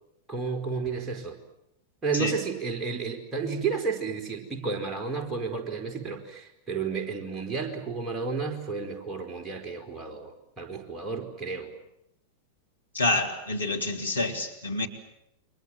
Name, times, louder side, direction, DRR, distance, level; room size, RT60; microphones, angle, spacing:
voice 1, 0.3-1.4 2.0-11.7, right 5 dB, 15° right, 2 dB, 4.5 m, -32 dB
voice 2, 12.9-14.9, left 2 dB, 80° left, 1 dB, 3.3 m, -27 dB
29.0 x 24.5 x 7.6 m, 0.82 s
figure-of-eight pair, 90°, 0 cm